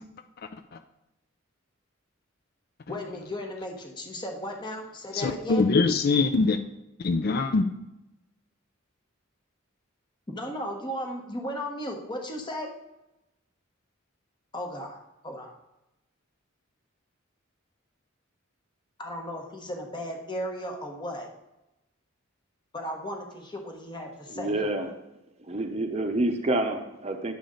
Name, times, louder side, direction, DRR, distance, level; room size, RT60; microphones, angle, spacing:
voice 1, 2.9-5.7 10.3-12.7 14.5-15.6 19.0-21.3 22.7-24.8, equal, 20° left, 2 dB, 1.3 m, -35 dB
voice 2, 5.1-6.6 7.0-7.7, left 3 dB, 50° left, 8 dB, 0.4 m, -23 dB
voice 3, 24.3-24.9 25.5-27.3, right 2 dB, 30° right, 5 dB, 0.7 m, -28 dB
9.8 x 7.0 x 3.9 m, 0.92 s
head